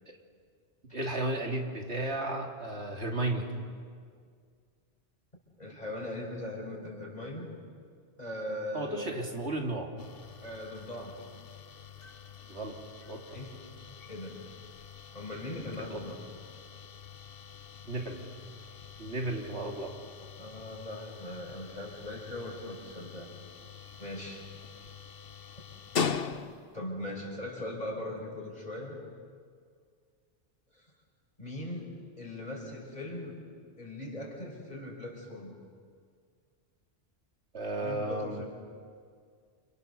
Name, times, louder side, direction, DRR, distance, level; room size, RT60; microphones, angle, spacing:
voice 1, 0.9-3.5 8.7-9.9 12.5-12.8 13.1-13.4 15.9-16.0 17.9-18.2 19.0-20.0 37.5-38.4, right 2 dB, 80° right, 1 dB, 3.1 m, -34 dB
voice 2, 5.6-7.5 8.2-9.2 10.4-11.2 13.3-13.6 14.1-14.4 15.1-16.2 20.4-23.3 24.0-24.4 26.7-29.0 30.7-30.9 31.4-33.4 33.8-35.5 37.8-38.4, left 1 dB, 40° left, 0 dB, 5.6 m, -40 dB
sound 1, 10.0-26.8, left 6 dB, 60° left, 1.2 m, -42 dB
29.0 x 28.0 x 6.9 m, 2.1 s
omnidirectional pair, 1.1 m